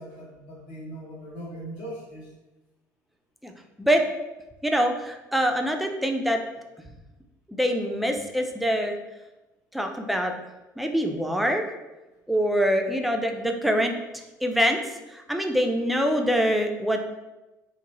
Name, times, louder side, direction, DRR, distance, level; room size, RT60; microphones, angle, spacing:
voice 1, 0.0-2.3, right 1 dB, 65° left, -4 dB, 1.0 m, -39 dB
voice 2, 4.6-6.4 7.5-8.9 9.7-10.3 10.8-11.7 12.3-13.9 14.4-14.8 15.1-17.1, equal, ahead, 3 dB, 0.4 m, -24 dB
2.5 x 2.1 x 3.0 m, 1.1 s
hypercardioid pair, 65°, 10 cm